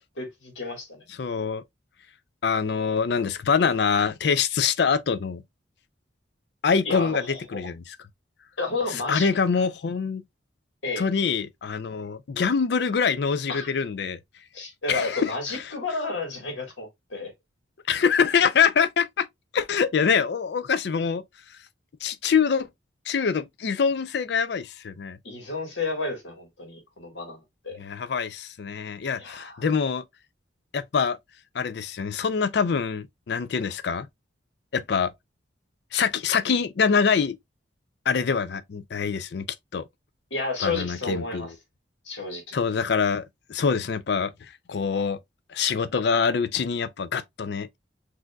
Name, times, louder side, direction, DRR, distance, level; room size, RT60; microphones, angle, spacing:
voice 1, 0.2-1.0 6.8-7.6 8.6-9.3 10.8-11.1 13.5-13.7 14.5-17.3 25.2-27.8 29.1-29.7 40.3-41.5 42.0-42.6, left 3 dB, 75° left, 1.6 m, -31 dB
voice 2, 1.2-1.6 2.4-5.4 6.6-8.0 9.1-10.2 11.0-14.2 14.9-15.3 17.9-19.3 19.5-21.2 22.0-22.7 23.1-25.2 27.8-30.0 30.7-31.2 31.5-34.1 34.7-35.1 35.9-37.4 38.1-39.5 39.7-39.9 40.6-41.5 42.5-44.3 44.7-45.2 45.5-47.8, left 6 dB, 60° left, 0.4 m, -24 dB
6.1 x 2.6 x 2.2 m
head